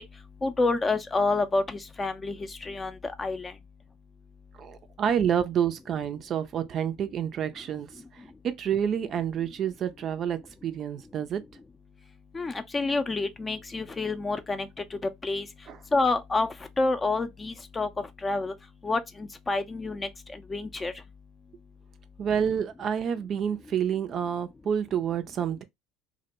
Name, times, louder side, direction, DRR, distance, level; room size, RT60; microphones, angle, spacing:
voice 1, 0.4-2.4 2.6-3.5 12.3-15.5 15.9-16.5 16.8-17.9 18.2-18.5 18.8-20.1 20.5-20.9, left 3 dB, 25° left, 0.4 m, -28 dB
voice 2, 4.6-7.9 8.1-11.4 15.7-15.8 22.2-25.6, right 8 dB, 45° right, 0.4 m, -28 dB
2.1 x 2.1 x 2.9 m
hypercardioid pair, 70°, 0 cm